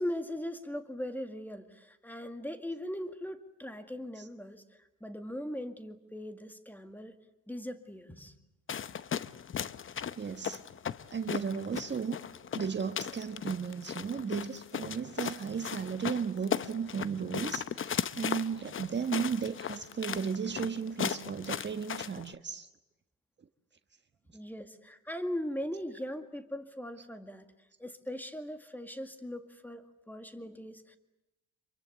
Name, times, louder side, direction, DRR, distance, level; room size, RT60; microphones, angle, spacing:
voice 1, 0.0-7.1 7.5-8.3 24.3-27.5 27.8-31.0, equal, 5° left, 7 dB, 2.1 m, -39 dB
sound 1, 8.7-22.3, left 8 dB, 45° left, 0.8 m, -37 dB
voice 2, 10.2-10.6 11.1-12.2 12.5-22.7, right 6 dB, 35° right, 8 dB, 1.4 m, -35 dB
27.0 x 23.5 x 8.3 m, 0.99 s
cardioid pair, 90°, 30 cm